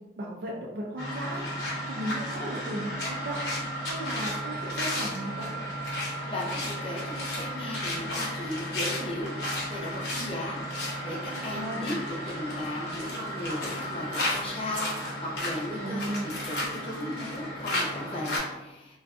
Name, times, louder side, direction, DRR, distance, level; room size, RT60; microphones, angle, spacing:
voice 1, 0.2-3.4 3.8-5.6 11.5-12.0 15.8-16.3, right 1 dB, 65° right, -2 dB, 0.4 m, -36 dB
sound 1, 1.0-18.4, equal, 65° left, 0.8 m, -33 dB
voice 2, 6.3-19.0, left 1 dB, 30° left, -4 dB, 0.5 m, -36 dB
2.5 x 2.4 x 2.3 m, 1.1 s
head